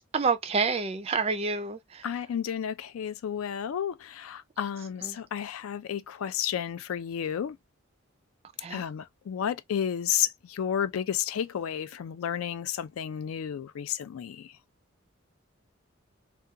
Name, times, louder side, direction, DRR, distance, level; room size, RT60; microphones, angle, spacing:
voice 1, 0.1-2.1 5.0-5.2 8.6-8.9, right 4 dB, 30° right, 0.3 m, -28 dB
voice 2, 2.0-7.6 8.7-14.5, left 9 dB, 75° left, 0.3 m, -32 dB
2.4 x 2.2 x 2.6 m
head